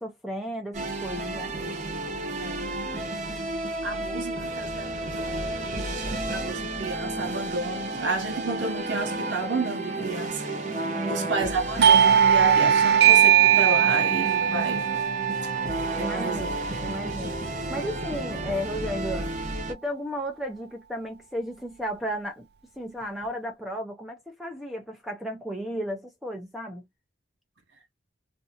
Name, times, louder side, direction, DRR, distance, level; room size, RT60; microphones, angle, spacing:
voice 1, 0.0-1.6 10.9-11.3 15.9-17.4 17.7-19.3 19.7-22.5 22.8-26.9, equal, ahead, 0.6 m, -34 dB
sound 1, 0.7-19.7, right 2 dB, 40° right, 0.9 m, -32 dB
voice 2, 3.8-10.5 11.1-14.8 15.4-15.6 15.9-16.5 16.8-17.0, right 3 dB, 85° right, 0.7 m, -32 dB
Doorbell, 11.8-17.1, right 9 dB, 65° right, 0.4 m, -20 dB
2.6 x 2.3 x 2.8 m
head